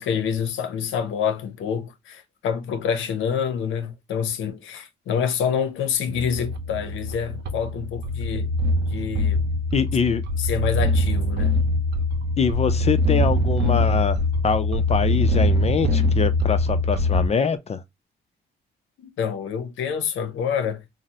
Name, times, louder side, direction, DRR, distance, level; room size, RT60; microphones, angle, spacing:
voice 1, 0.0-8.5 8.9-9.4 10.4-11.6 19.0-20.8, left 7 dB, 80° left, 0.7 m, -27 dB
sound 1, 6.1-17.3, left 1 dB, 60° right, 0.7 m, -23 dB
voice 2, 9.7-10.2 12.4-14.2 14.4-17.8, left 6 dB, 30° left, 0.4 m, -24 dB
3.7 x 2.0 x 2.7 m
cardioid pair, 90°, 20 cm